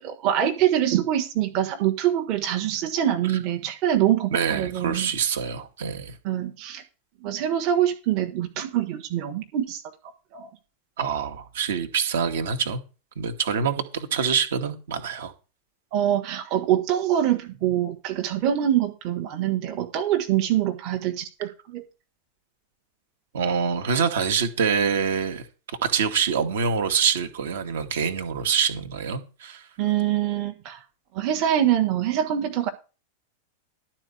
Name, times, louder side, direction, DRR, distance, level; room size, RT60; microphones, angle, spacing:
voice 1, 0.0-5.1 6.2-6.8 7.2-9.8 10.3-10.5 15.9-21.8 29.8-30.8 31.1-32.7, right 11 dB, 40° right, 1.3 m, -24 dB
voice 2, 4.3-6.2 11.0-12.8 13.2-15.3 23.3-25.4 25.8-29.7, right 6 dB, 60° right, 1.5 m, -25 dB
11.5 x 4.4 x 8.1 m
figure-of-eight pair, 90°, 0 cm